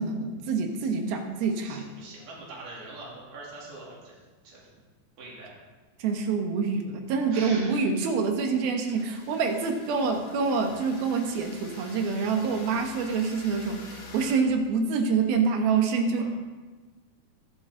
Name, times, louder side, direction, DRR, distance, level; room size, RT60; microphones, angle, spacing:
voice 1, 0.0-1.9 6.0-16.2, right 5 dB, 80° right, 4 dB, 3.1 m, -26 dB
voice 2, 1.6-4.2 4.4-4.7 5.2-5.6 7.3-7.9 16.2-16.3, right 2 dB, 60° right, -5 dB, 4.5 m, -43 dB
sound 1, 9.0-14.4, left 3 dB, 45° left, 1.9 m, -47 dB
23.0 x 8.0 x 3.9 m, 1.3 s
omnidirectional pair, 4.3 m